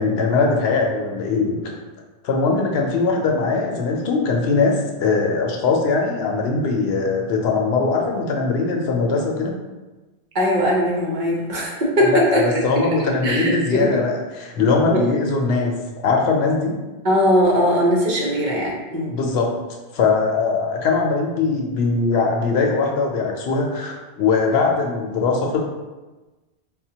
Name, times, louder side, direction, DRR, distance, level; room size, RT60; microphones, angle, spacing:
voice 1, 0.0-1.8 2.2-9.6 12.0-15.8 16.0-16.8 19.1-19.5 19.9-25.6, left 4 dB, 75° left, 1 dB, 0.8 m, -21 dB
voice 2, 10.3-12.4 13.2-13.9 14.9-15.0 17.0-19.1, equal, 50° right, -4 dB, 0.8 m, -19 dB
4.1 x 2.1 x 2.8 m, 1.2 s
omnidirectional pair, 1.1 m